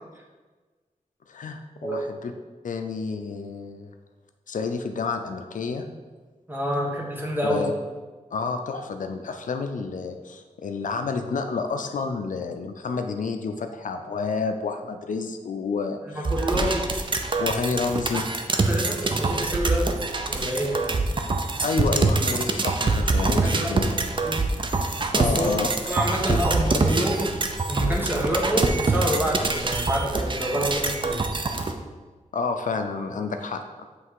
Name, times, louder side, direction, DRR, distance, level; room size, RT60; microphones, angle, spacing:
voice 1, 1.3-2.3 2.6-3.9 4.5-5.9 7.4-7.7 8.3-16.0 17.4-18.2 21.6-23.9 25.1-25.7 26.3-26.4 32.3-33.6, left 4 dB, 75° left, 6 dB, 0.5 m, -29 dB
voice 2, 6.5-7.7 16.1-16.8 18.1-18.2 18.5-19.9 20.3-20.8 23.4-23.8 24.2-24.5 25.1-25.5 25.9-27.4 27.7-31.3, equal, 15° right, -2 dB, 1.3 m, -27 dB
sound 1, 16.2-31.7, right 3 dB, 35° right, 0.5 m, -25 dB
7.8 x 3.2 x 4.7 m, 1.3 s
wide cardioid pair, 110°, 13 cm